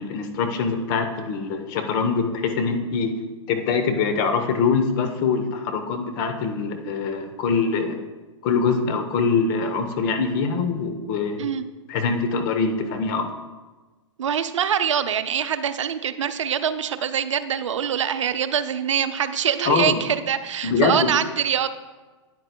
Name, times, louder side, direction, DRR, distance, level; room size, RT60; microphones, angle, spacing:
voice 1, 0.0-3.2 3.5-8.0 8.4-11.5 11.9-13.3 19.6-20.0 20.6-21.1, left 5 dB, 40° left, 6 dB, 1.0 m, -23 dB
voice 2, 14.2-21.7, right 8 dB, 75° right, 11 dB, 0.6 m, -24 dB
9.6 x 9.2 x 2.3 m, 1.3 s
hypercardioid pair, 125°, 16 cm